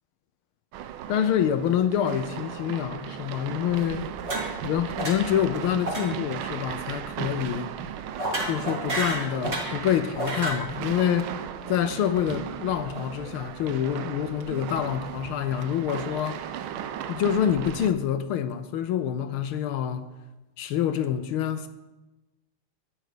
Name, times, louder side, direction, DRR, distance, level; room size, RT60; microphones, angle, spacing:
sound 1, 0.7-17.9, right 10 dB, 80° right, 1.5 m, -36 dB
voice 1, 1.1-4.0 4.6-7.7 8.5-11.4 11.7-16.4 17.1-20.1 20.6-21.7, left 9 dB, 80° left, 1.5 m, -26 dB
sound 2, 4.2-4.7 5.0-5.4 5.8-6.1 6.4-6.6 8.2-9.8 10.1-10.6, right 1 dB, 30° right, 2.8 m, -30 dB
12.0 x 9.3 x 5.0 m
omnidirectional pair, 2.4 m